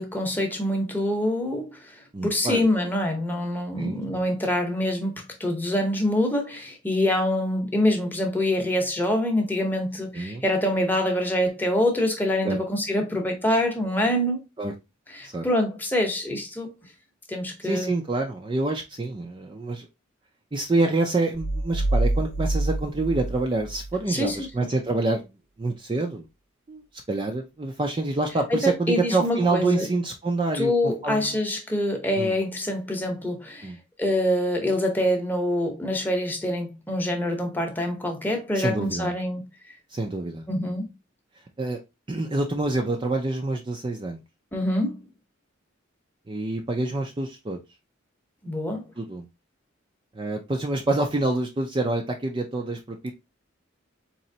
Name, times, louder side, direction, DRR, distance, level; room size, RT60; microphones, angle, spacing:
voice 1, 0.0-14.4 15.1-16.7 17.3-17.9 24.1-24.7 28.5-29.8 30.5-33.7 34.0-39.4 40.5-40.9 44.5-45.0 48.4-48.9, left 1 dB, 10° left, 0.8 m, -25 dB
voice 2, 2.1-2.6 3.7-4.2 10.1-10.4 12.4-12.6 14.6-14.7 15.2-15.5 17.6-19.9 20.5-25.2 25.6-26.3 26.7-26.8 27.1-31.4 32.2-32.4 33.6-33.8 38.5-39.1 39.9-40.5 41.6-41.8 42.1-44.2 46.3-47.6 49.0-49.3 50.1-53.1, right 2 dB, 25° right, 0.4 m, -27 dB
sound 1, 21.3-24.0, right 2 dB, 85° right, 1.2 m, -26 dB
4.2 x 3.0 x 2.7 m
head